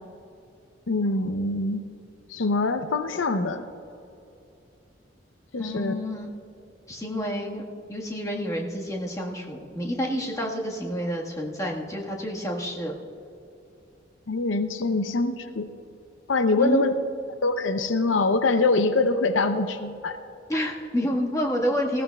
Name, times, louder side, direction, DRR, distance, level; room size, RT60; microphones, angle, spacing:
voice 1, 0.9-1.9 2.3-3.7 5.5-5.9 14.3-15.7 16.3-16.9 17.4-20.2, left 3 dB, 85° left, 9 dB, 0.7 m, -24 dB
voice 2, 5.6-6.3 6.9-7.6 7.9-12.9 16.6-16.8 20.5-22.0, equal, 15° left, -2 dB, 1.5 m, -29 dB
19.5 x 15.5 x 2.3 m, 2.8 s
head